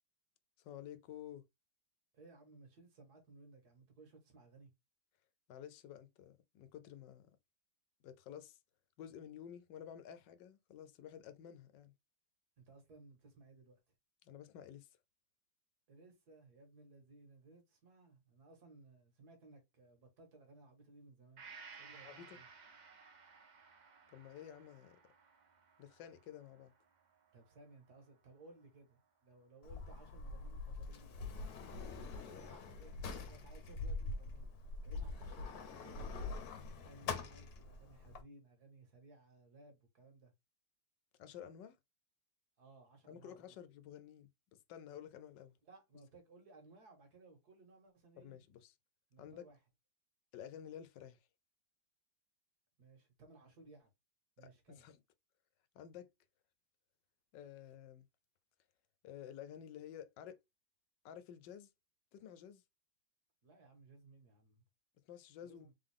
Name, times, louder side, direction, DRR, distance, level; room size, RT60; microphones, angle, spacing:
voice 1, 0.6-1.5 5.5-7.3 8.0-8.6 9.0-11.9 14.2-14.9 22.0-22.4 24.1-25.0 25.8-26.7 41.2-41.8 43.1-45.6 48.2-48.7 49.2-49.5 50.3-51.2 54.4-55.0 55.7-56.1 57.3-58.0 59.0-60.4 61.0-61.7 62.1-62.6 65.1-65.7, left 9 dB, 85° left, 1.3 m, -52 dB
voice 2, 2.1-4.7 12.6-13.8 15.9-21.4 21.8-22.5 27.3-31.1 32.0-34.5 34.8-36.5 36.7-40.3 42.6-43.6 45.6-48.4 49.1-49.6 52.8-53.9 54.4-54.9 63.4-64.6 65.4-65.7, right 3 dB, 60° right, 2.0 m, -61 dB
Gong, 21.4-29.0 29.4-29.5, right 5 dB, 45° right, 0.5 m, -59 dB
Sliding door, 29.6-38.2, left 3 dB, 65° left, 1.3 m, -44 dB
3.8 x 3.7 x 3.4 m
omnidirectional pair, 1.9 m